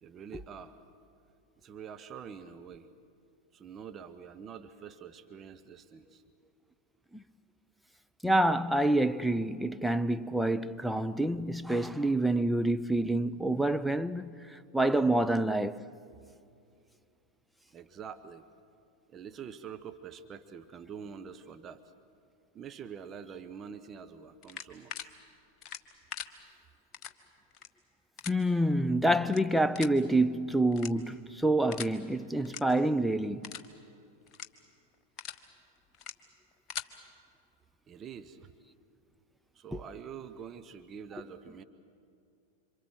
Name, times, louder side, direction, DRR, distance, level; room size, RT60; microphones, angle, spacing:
voice 1, 0.0-0.8 1.6-2.9 3.5-6.2 14.9-15.1 17.7-18.5 19.1-21.8 22.5-25.1 37.9-38.5 39.5-41.6, right 7 dB, 25° right, 1.0 m, -46 dB
voice 2, 8.2-15.8 28.3-33.5 39.7-39.8, right 1 dB, ahead, 0.6 m, -27 dB
sound 1, 24.4-25.0 25.6-26.3 26.9-27.1 27.5-27.7 28.2-28.3 29.2-29.4 29.7-30.0 30.7-31.2 31.7-31.9 32.4-32.6 33.0-33.1 33.4-33.7 34.3-34.5 34.9-35.4 35.9-36.1 36.5-36.9, left 8 dB, 35° left, 1.3 m, -40 dB
27.5 x 25.5 x 7.8 m
figure-of-eight pair, 90°, 0 cm